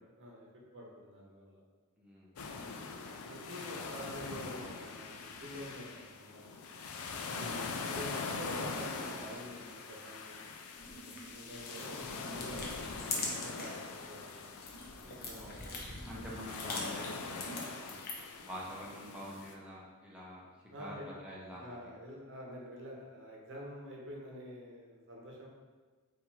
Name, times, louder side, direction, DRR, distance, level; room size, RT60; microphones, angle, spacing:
voice 1, 0.2-0.5 0.7-1.6 3.3-6.6 7.3-7.6 7.9-10.4 10.9-14.5 15.0-15.8 20.7-21.1 21.5-25.5, equal, 60° right, -2 dB, 0.9 m, -47 dB
voice 2, 2.0-2.3 7.3-7.6 15.3-15.5 16.1-18.0 18.4-20.5 20.8-21.9, equal, 5° right, -6 dB, 0.6 m, -46 dB
sound 1, 2.4-19.5, left 4 dB, 75° left, 0.4 m, -43 dB
sound 2, 10.7-13.8 14.2-18.4, left 3 dB, 45° left, 0.8 m, -43 dB
4.4 x 2.6 x 4.1 m, 1.4 s
head